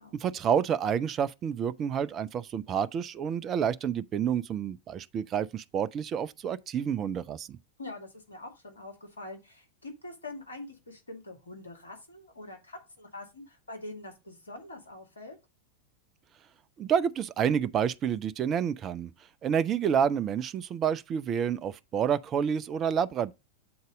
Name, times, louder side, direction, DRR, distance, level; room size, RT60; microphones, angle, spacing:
voice 1, 0.2-7.6 16.8-19.1 19.4-23.3, right 8 dB, 30° right, 0.4 m, -29 dB
voice 2, 7.8-15.4, left 2 dB, 75° left, 2.0 m, -44 dB
7.7 x 4.0 x 5.0 m
figure-of-eight pair, 90°, 0 cm